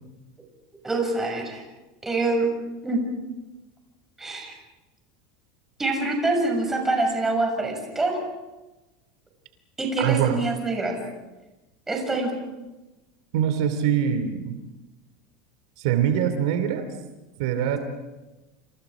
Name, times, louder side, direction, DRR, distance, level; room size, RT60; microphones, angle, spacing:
voice 1, 0.8-1.6 2.0-2.5 2.8-3.0 4.2-4.5 5.8-8.2 9.8-10.9 11.9-12.3, right 2 dB, 10° right, 1 dB, 6.6 m, -25 dB
voice 2, 10.0-10.4 13.3-14.6 15.8-16.8 17.4-17.8, right 9 dB, 75° right, 8 dB, 2.7 m, -23 dB
29.5 x 27.5 x 5.0 m, 1.1 s
supercardioid pair, 140°, 3 cm